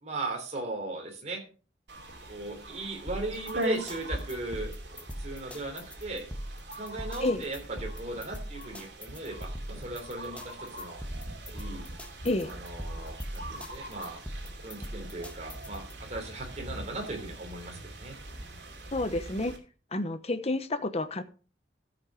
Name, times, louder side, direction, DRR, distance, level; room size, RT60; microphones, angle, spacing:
voice 1, 0.0-1.4 2.3-4.7 5.2-6.3 6.7-11.0 11.5-11.9 12.4-14.2 14.6-18.2, right 2 dB, 40° right, 1 dB, 3.4 m, -38 dB
sound 1, 1.9-19.6, right 1 dB, 75° right, 2.8 m, -41 dB
sound 2, 3.1-15.9, equal, 5° left, 1.4 m, -41 dB
voice 2, 18.9-19.5 19.9-21.2, left 2 dB, 35° left, 11 dB, 0.9 m, -29 dB
13.5 x 6.1 x 5.1 m, 0.38 s
head